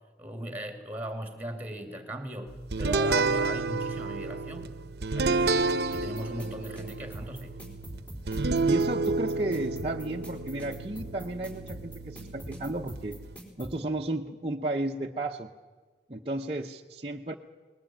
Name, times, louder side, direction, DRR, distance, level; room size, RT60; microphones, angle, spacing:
voice 1, 0.2-4.7 5.1-5.5 5.9-7.6, right 1 dB, 10° right, 7 dB, 2.7 m, -38 dB
sound 1, 2.7-13.4, right 3 dB, 65° right, 0.9 m, -30 dB
sound 2, 5.9-13.7, right 1 dB, 10° left, 4.1 m, -43 dB
voice 2, 8.7-13.2 13.6-15.5 16.1-17.3, right 2 dB, 35° right, 0 dB, 0.8 m, -33 dB
20.0 x 20.0 x 9.0 m, 1.4 s
head